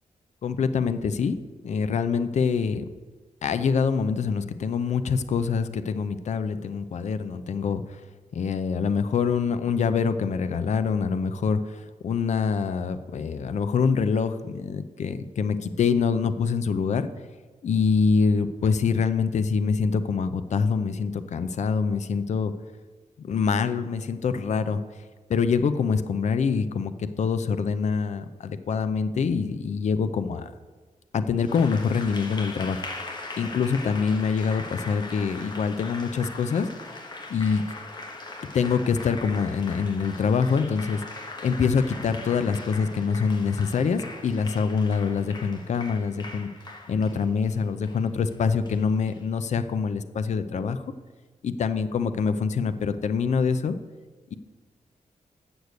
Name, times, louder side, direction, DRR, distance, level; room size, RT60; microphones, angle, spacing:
voice 1, 0.4-1.3 1.6-2.8 3.4-8.0 8.3-17.1 17.6-22.5 23.2-24.8 25.3-30.5 31.1-32.9 33.4-36.7 37.3-37.6 38.5-41.0 41.4-46.5 46.9-50.8 51.4-53.7, left 5 dB, 60° left, 11 dB, 0.5 m, -25 dB
Applause, 31.4-49.2, left 2 dB, 30° left, 1.2 m, -40 dB
7.9 x 6.6 x 8.1 m, 1.4 s
wide cardioid pair, 140°, 14 cm